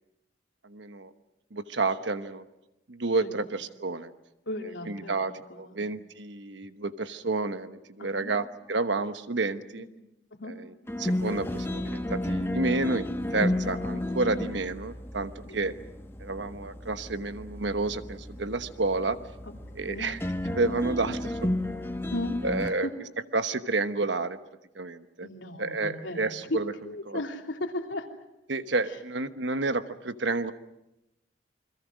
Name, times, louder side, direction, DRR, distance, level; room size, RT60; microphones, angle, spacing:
voice 1, 0.6-1.1 1.5-2.5 2.9-4.1 4.9-5.3 5.6-9.9 10.5-15.7 16.2-19.2 19.8-20.2 20.5-21.5 22.4-22.9 23.3-24.4 24.7-25.3 25.6-26.7 27.1-27.2 28.5-30.5, right 3 dB, 75° right, 11 dB, 1.2 m, -30 dB
voice 2, 4.5-5.8 8.0-8.3 9.7-9.9 10.3-10.5 13.4-14.4 15.4-15.7 19.8-20.1 22.1-22.9 25.2-26.6 26.8-28.1 28.9-29.0, left 1 dB, 90° left, 2 dB, 3.1 m, -37 dB
sound 1, 10.9-22.7, left 1 dB, 10° left, 1.0 m, -33 dB
29.0 x 22.0 x 6.4 m, 0.92 s
head